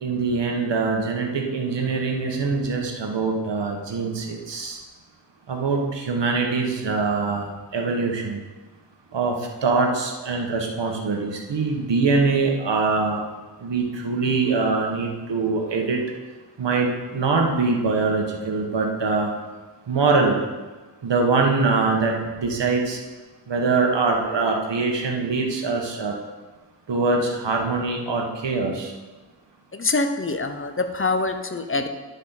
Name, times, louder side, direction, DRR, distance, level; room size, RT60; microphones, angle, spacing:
voice 1, 0.0-4.8 5.5-8.4 9.1-13.2 13.6-16.0 16.6-19.3 19.9-20.4 21.0-23.0 23.5-26.1 26.9-28.9, right 4 dB, 70° right, 1 dB, 1.3 m, -23 dB
voice 2, 29.7-31.9, left 3 dB, 30° left, 8 dB, 0.7 m, -25 dB
10.0 x 5.3 x 4.1 m, 1.3 s
wide cardioid pair, 75°, 44 cm